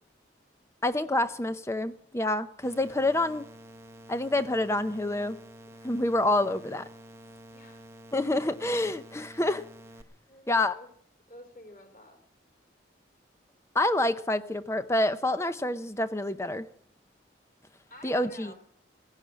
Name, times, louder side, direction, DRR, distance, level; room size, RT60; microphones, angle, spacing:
voice 1, 0.8-3.4 4.1-5.4 5.8-6.9 8.1-9.6 10.5-10.7 13.7-16.7 18.0-18.5, left 1 dB, 15° left, 11 dB, 0.6 m, -27 dB
sound 1, 2.6-10.0, right 1 dB, 15° right, 0.8 m, -49 dB
voice 2, 7.5-7.8 10.3-10.9 11.3-12.2 17.9-18.6, left 1 dB, 45° left, 3 dB, 4.3 m, -49 dB
17.0 x 10.5 x 7.6 m, 0.62 s
head